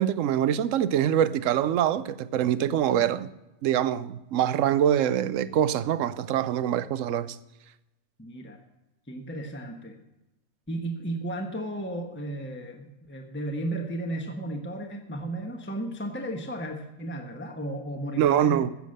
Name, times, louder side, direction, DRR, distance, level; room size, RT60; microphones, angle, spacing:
voice 1, 0.0-3.3 3.6-7.4 18.2-18.7, right 10 dB, 75° right, 1.0 m, -24 dB
voice 2, 8.2-8.6 9.1-10.0 10.7-18.7, right 1 dB, 10° left, 1.1 m, -34 dB
15.5 x 7.2 x 6.5 m
omnidirectional pair, 1.4 m